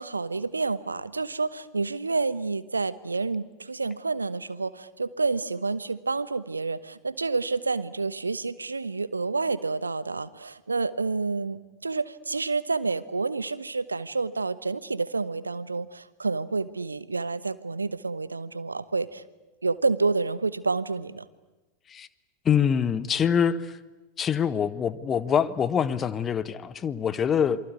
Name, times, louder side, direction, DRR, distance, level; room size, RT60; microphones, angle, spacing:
voice 1, 0.0-19.2 19.6-21.2, right 3 dB, 80° right, 1.0 m, -29 dB
voice 2, 22.4-23.7 24.2-27.6, left 7 dB, 25° left, 1.2 m, -25 dB
28.0 x 23.5 x 8.4 m
figure-of-eight pair, 90°, 0 cm